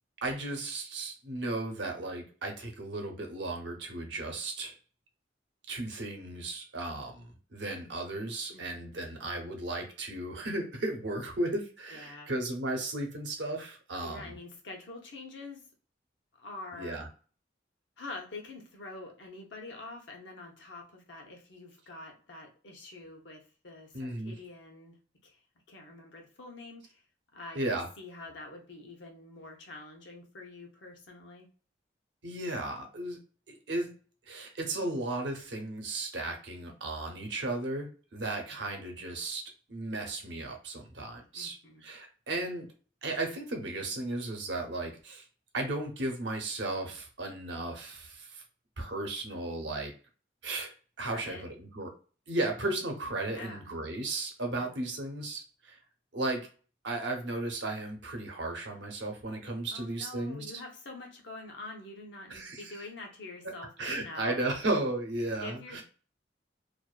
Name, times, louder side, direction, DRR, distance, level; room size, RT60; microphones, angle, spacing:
voice 1, 0.2-4.8 5.7-14.3 16.7-17.1 23.9-24.4 27.5-27.9 32.2-33.2 33.5-33.9 34.3-42.7 43.0-45.3 45.5-48.4 48.8-49.9 50.4-50.7 51.0-51.9 52.3-55.8 56.1-56.5 56.8-60.5 62.3-62.7 63.8-65.8, right 2 dB, 75° right, 3 dB, 0.7 m, -35 dB
voice 2, 8.5-9.0 11.9-12.3 14.0-15.7 16.4-17.0 18.0-25.0 25.2-25.4 25.7-27.0 27.3-27.6 28.0-31.5 41.3-41.8 51.1-51.5 53.2-53.7 54.5-54.8 59.7-64.4 65.4-65.8, left 2 dB, 80° left, 1 dB, 0.7 m, -46 dB
2.5 x 2.2 x 2.3 m, 0.38 s
head